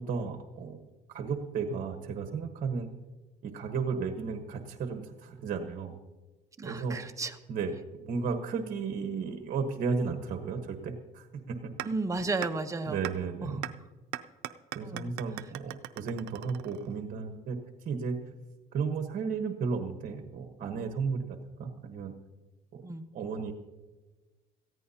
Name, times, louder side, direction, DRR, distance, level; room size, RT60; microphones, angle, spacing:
voice 1, 0.1-0.8 1.1-2.9 3.4-5.9 6.6-7.0 7.5-11.7 12.9-13.7 14.7-18.2 18.7-22.1 22.7-22.8 23.1-23.5, right 5 dB, 55° right, 6 dB, 1.2 m, -34 dB
voice 2, 6.6-7.4 11.8-13.0 13.4-13.6 14.8-15.1 22.8-23.0, right 3 dB, 20° right, 6 dB, 0.9 m, -33 dB
sound 1, 11.8-11.9 12.4-12.5 13.0-13.1 13.6-13.7 14.1-17.1, right 16 dB, 90° right, 0.5 m, -38 dB
18.5 x 14.5 x 2.8 m, 1.2 s
cardioid pair, 110°, 17 cm